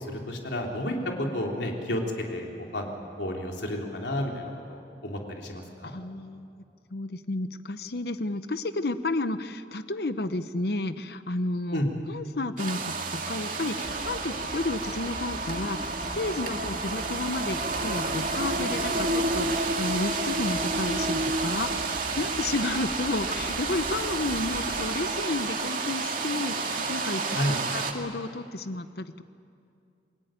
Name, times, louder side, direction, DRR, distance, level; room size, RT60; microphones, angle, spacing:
voice 1, 0.0-2.0 2.3-5.9 11.7-11.9 27.3-27.6, left 1 dB, 85° left, 0 dB, 3.4 m, -31 dB
voice 2, 5.8-6.5 6.9-11.8 12.1-29.2, left 2 dB, 60° left, 11 dB, 0.8 m, -32 dB
sound 1, 12.6-27.9, right 3 dB, 50° right, 2.3 m, -30 dB
sound 2, 13.8-24.9, equal, 25° left, 2.7 m, -43 dB
28.0 x 21.5 x 9.1 m, 2.5 s
head